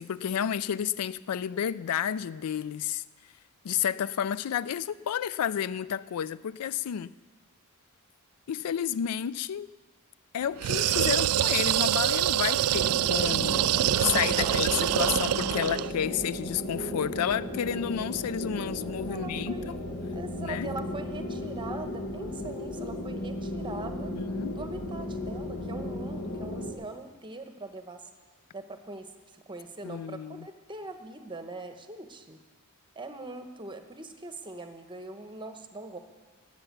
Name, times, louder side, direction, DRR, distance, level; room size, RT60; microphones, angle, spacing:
voice 1, 0.0-3.0 3.6-7.1 8.5-9.7 10.3-19.6 20.4-20.7 24.1-24.5 29.8-30.5, left 9 dB, 90° left, 0.4 m, -31 dB
sound 1, 10.6-15.9, right 12 dB, 75° right, 0.3 m, -25 dB
sound 2, 12.7-26.7, left 1 dB, 65° left, 1.9 m, -35 dB
voice 2, 14.4-15.1 15.4-15.6 15.9-16.3 19.1-19.7 20.1-24.1 24.6-28.1 28.5-29.1 29.5-32.4 33.0-36.0, right 2 dB, 20° right, 0.9 m, -42 dB
13.5 x 7.0 x 9.3 m
head